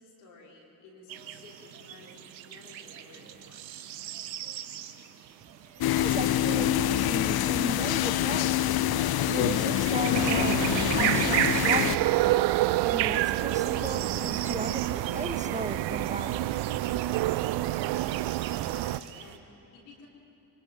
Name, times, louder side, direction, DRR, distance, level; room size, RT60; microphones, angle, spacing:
voice 1, 0.0-3.7 18.6-20.1, left 3 dB, 80° left, -2 dB, 3.9 m, -53 dB
sound 1, 1.1-19.4, right 10 dB, 85° right, 1.0 m, -42 dB
voice 2, 5.7-8.7 9.2-10.6 11.0-12.3 12.8-16.6, right 2 dB, 15° right, 8 dB, 1.4 m, -36 dB
sound 2, 5.8-12.0, left 12 dB, 50° left, 0.7 m, -26 dB
sound 3, 10.1-19.0, right 16 dB, 55° right, 0.6 m, -27 dB
25.5 x 24.0 x 5.1 m, 2.9 s
hypercardioid pair, 45°, 49 cm